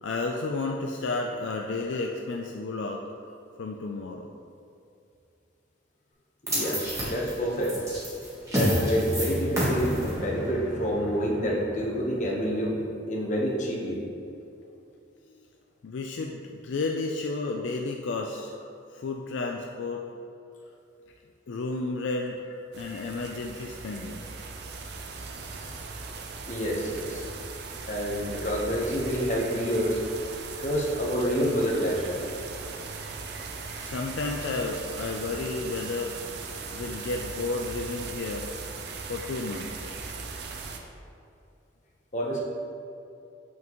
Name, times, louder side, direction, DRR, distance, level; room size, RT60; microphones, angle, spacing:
voice 1, 0.0-3.0 3.6-4.3 15.3-15.4 15.8-18.5 18.9-20.0 21.5-22.4 22.7-24.3 33.8-38.5 39.1-39.9, left 3 dB, 65° left, 1 dB, 0.4 m, -32 dB
voice 2, 6.5-7.8 8.5-14.0 25.6-25.8 26.5-27.3 27.9-30.0 30.6-32.2 42.1-42.4, equal, 40° left, -2 dB, 1.0 m, -28 dB
sound 1, 6.5-12.7, equal, 15° right, 1.3 m, -30 dB
sound 2, 22.7-40.8, right 4 dB, 55° right, 0.5 m, -39 dB
7.2 x 5.9 x 3.0 m, 2.6 s
head